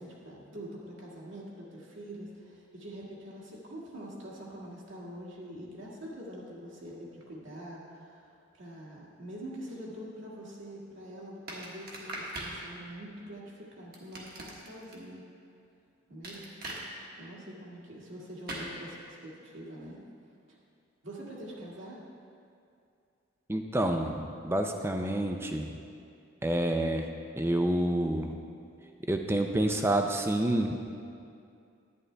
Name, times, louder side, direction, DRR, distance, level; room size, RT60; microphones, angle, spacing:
voice 1, 0.0-15.2 16.1-16.5 17.2-20.0 21.0-22.0, equal, 65° right, -5 dB, 2.1 m, -45 dB
sound 1, 11.5-12.6 13.9-14.9 16.2-16.8 18.5-18.7, right 1 dB, 45° right, 1.4 m, -39 dB
voice 2, 23.5-25.7 26.4-27.1 27.4-28.3 29.1-30.8, right 1 dB, 10° right, 4 dB, 0.5 m, -28 dB
11.0 x 9.5 x 3.4 m, 2.5 s
head